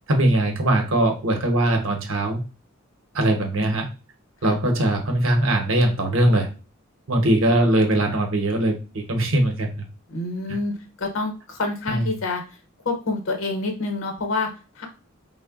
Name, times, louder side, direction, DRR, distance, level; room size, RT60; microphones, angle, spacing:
voice 1, 0.1-2.4 3.1-3.9 4.4-6.5 7.1-9.7 11.9-12.1, right 1 dB, 75° right, 4 dB, 0.7 m, -21 dB
voice 2, 10.1-12.4 12.8-14.5 14.8-14.9, left 3 dB, 75° left, 4 dB, 0.8 m, -27 dB
3.6 x 2.1 x 2.3 m, 0.32 s
head